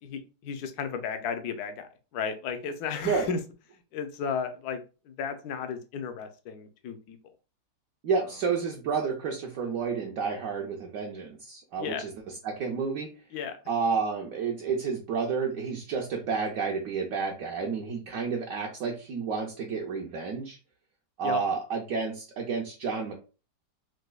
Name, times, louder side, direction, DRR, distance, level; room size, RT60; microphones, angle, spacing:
voice 1, 0.0-3.4 3.9-7.2 11.8-12.0 13.3-13.6 21.2-21.4, left 6 dB, 75° left, 8 dB, 1.1 m, -34 dB
voice 2, 8.0-12.1 12.4-13.1 13.7-20.6 21.2-23.2, right 5 dB, 70° right, 1 dB, 0.9 m, -30 dB
4.0 x 2.6 x 2.2 m, 0.33 s
omnidirectional pair, 1.8 m